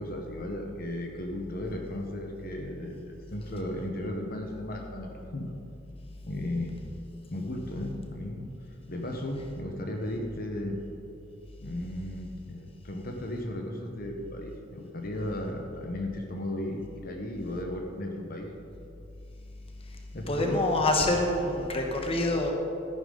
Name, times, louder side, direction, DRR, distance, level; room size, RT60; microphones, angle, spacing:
voice 1, 0.0-5.5 6.2-6.7 7.3-8.5 8.9-10.8 11.6-18.5 20.1-20.6, left 1 dB, 50° left, 2 dB, 1.1 m, -35 dB
voice 2, 20.3-22.5, left 2 dB, 30° left, 2 dB, 1.2 m, -26 dB
13.5 x 10.5 x 3.9 m, 2.6 s
head